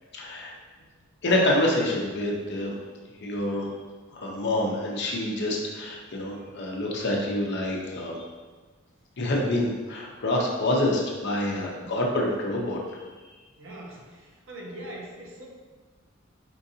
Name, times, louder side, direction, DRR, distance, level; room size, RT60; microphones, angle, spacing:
voice 1, 0.1-0.5 1.2-2.7 3.2-3.7 4.1-8.2 9.2-12.8, left 1 dB, 55° left, -1 dB, 0.6 m, -27 dB
voice 2, 13.6-15.5, right 1 dB, 65° right, -1 dB, 0.7 m, -42 dB
4.5 x 2.5 x 2.7 m, 1.4 s
head